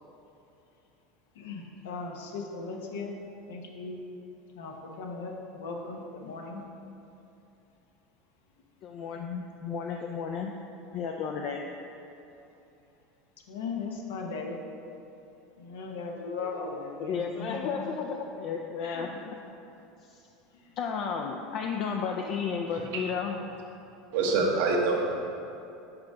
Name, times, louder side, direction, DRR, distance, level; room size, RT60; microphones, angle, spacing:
voice 1, 1.3-3.2 3.5-4.0 4.5-6.6 13.5-14.6 15.6-17.7 18.8-19.3 20.5-20.7, left 4 dB, 85° left, 1 dB, 0.8 m, -38 dB
voice 2, 8.8-10.5 10.9-11.6 16.4-16.5 17.0-19.1 20.1-20.2 20.8-23.4, left 6 dB, 55° left, 1 dB, 0.4 m, -33 dB
voice 3, 22.7-23.0 24.1-25.2, right 3 dB, 75° right, -1 dB, 1.0 m, -26 dB
5.1 x 4.8 x 4.7 m, 2.8 s
supercardioid pair, 105°, 0 cm